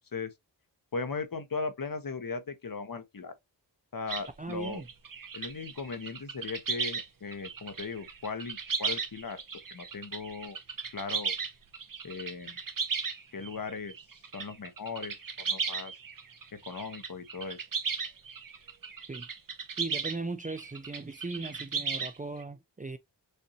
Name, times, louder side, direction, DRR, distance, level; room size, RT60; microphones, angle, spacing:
voice 1, 0.9-3.3 3.9-4.8 5.3-9.4 9.7-10.6 10.9-11.3 12.0-12.6 13.3-13.9 14.3-15.9 16.6-17.6, left 4 dB, 50° left, 1.1 m, -38 dB
sound 1, 4.1-7.1 7.3-20.2 20.4-22.4, right 5 dB, 50° right, 1.0 m, -36 dB
voice 2, 4.4-4.9 19.1-19.3 19.8-23.0, right 3 dB, 20° right, 0.5 m, -38 dB
6.7 x 2.7 x 2.8 m
wide cardioid pair, 70°, 44 cm